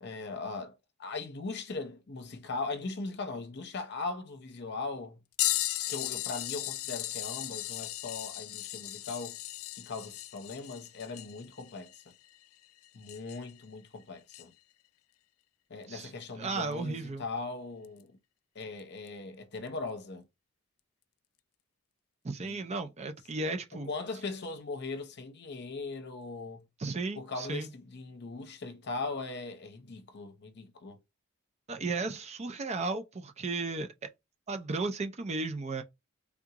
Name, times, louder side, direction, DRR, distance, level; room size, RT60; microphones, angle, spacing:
voice 1, 0.0-5.2 5.9-9.4 9.7-12.0 12.9-14.5 15.7-18.2 18.5-20.2 22.4-22.6 23.9-26.7 27.2-31.0, left 3 dB, 55° left, 0.7 m, -39 dB
sound 1, 5.4-13.6 14.3-14.4 16.7-16.8 17.8-18.0 19.1-19.2, left 16 dB, 75° left, 0.3 m, -36 dB
voice 2, 16.4-17.2 22.2-23.9 26.8-27.7 31.7-34.1 34.5-35.8, right 3 dB, 30° right, 0.5 m, -34 dB
3.5 x 2.4 x 2.8 m
head